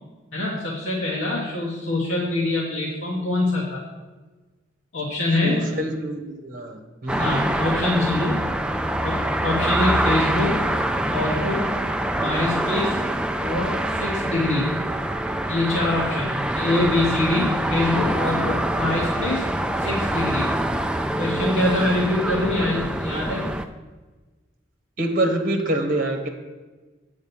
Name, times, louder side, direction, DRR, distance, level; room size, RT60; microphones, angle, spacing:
voice 1, 0.3-3.8 4.9-5.6 7.2-8.4 9.0-9.1 9.4-10.6 11.1-11.7 12.1-13.0 13.4-14.7 15.5-19.4 19.8-20.5 21.2-23.5, left 2 dB, 80° left, -4 dB, 1.4 m, -24 dB
voice 2, 5.4-7.3 25.0-26.3, right 1 dB, 45° right, 5 dB, 1.2 m, -25 dB
sound 1, 7.1-23.7, right 1 dB, 5° right, 0.3 m, -25 dB
8.2 x 5.1 x 7.1 m, 1.3 s
head